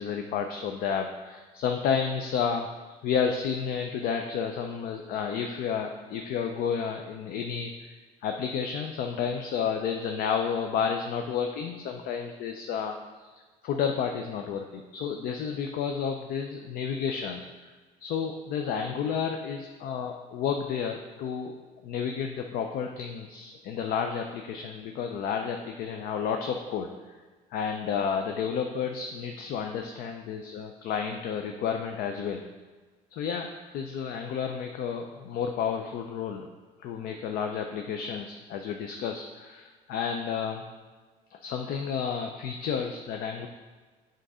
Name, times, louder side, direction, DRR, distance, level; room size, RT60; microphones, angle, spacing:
voice 1, 0.0-2.7 3.0-7.9 8.2-13.3 13.6-17.4 18.0-21.6 21.8-26.9 27.5-32.4 33.1-36.5 36.8-40.6 41.3-43.5, left 7 dB, 75° left, 4 dB, 0.5 m, -31 dB
7.6 x 3.9 x 4.9 m, 1.4 s
cardioid pair, 120°, 16 cm